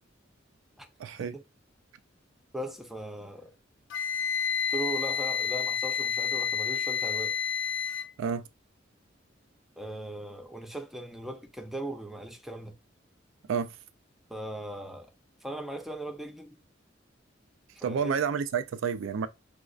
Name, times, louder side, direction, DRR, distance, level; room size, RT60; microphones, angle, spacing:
voice 1, 1.0-1.4 8.2-8.5 13.5-13.8 17.8-19.3, right 6 dB, 90° right, 0.3 m, -30 dB
voice 2, 2.5-3.5 4.7-7.4 9.8-12.8 14.3-15.1 15.4-16.6 17.7-18.2, right 1 dB, ahead, 0.5 m, -38 dB
Wind instrument woodwind instrument, 3.9-8.1, left 7 dB, 70° left, 0.5 m, -30 dB
4.8 x 2.1 x 2.4 m
head